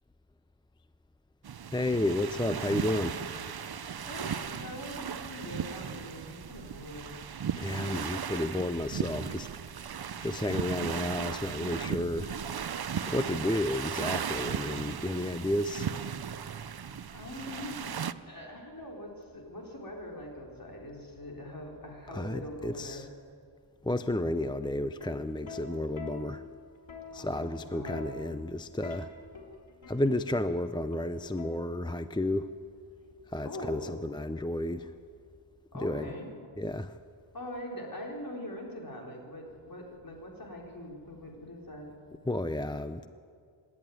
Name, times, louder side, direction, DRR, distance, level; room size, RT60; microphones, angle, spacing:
sound 1, 1.4-18.1, right 7 dB, 50° right, 0.6 m, -36 dB
voice 1, 1.7-3.2 7.6-9.5 10.2-12.3 13.1-15.9 22.1-23.1 23.8-26.4 27.1-29.1 29.9-32.5 33.3-34.9 35.7-36.1 36.6-37.0 42.3-43.1, left 1 dB, 10° left, 11 dB, 0.5 m, -32 dB
voice 2, 4.0-7.2 16.4-16.7 17.1-17.9 18.3-23.1 27.1-28.3 33.4-34.0 35.7-36.3 37.3-41.9, left 1 dB, 45° left, -1 dB, 3.9 m, -43 dB
Plucked string instrument, 25.0-32.0 33.1-33.4, left 4 dB, 65° left, 3.6 m, -46 dB
26.5 x 11.0 x 9.4 m, 2.3 s
wide cardioid pair, 80°, 47 cm